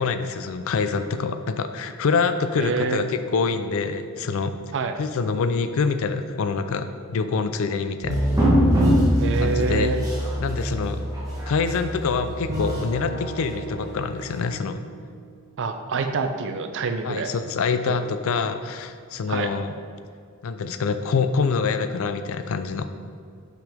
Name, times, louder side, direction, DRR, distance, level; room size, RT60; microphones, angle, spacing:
voice 1, 0.0-4.6 5.0-8.2 9.4-9.9 10.4-11.0 11.5-14.8 17.0-19.7 20.4-22.9, left 5 dB, 65° left, 10 dB, 0.4 m, -25 dB
voice 2, 2.6-3.0 4.7-4.9 9.2-10.0 15.6-17.3 17.9-18.0 19.3-19.5, right 4 dB, 60° right, 7 dB, 0.5 m, -26 dB
sound 1, 8.0-14.5, equal, 15° right, 1.3 m, -24 dB
Bowed string instrument, 12.5-15.8, right 1 dB, 45° right, 1.2 m, -35 dB
5.8 x 5.7 x 3.5 m, 2.2 s
head